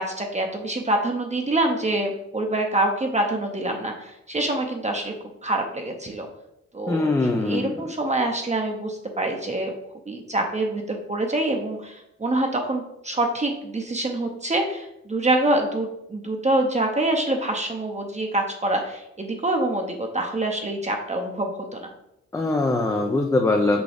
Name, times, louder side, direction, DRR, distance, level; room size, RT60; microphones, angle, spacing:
voice 1, 0.0-5.1 5.4-6.3 6.7-7.1 7.4-9.7 10.1-21.9, right 1 dB, 25° right, 2 dB, 0.7 m, -25 dB
voice 2, 6.9-7.7 22.3-23.8, left 2 dB, 10° left, 3 dB, 0.4 m, -22 dB
6.1 x 2.4 x 3.4 m, 0.83 s
cardioid pair, 65°, 31 cm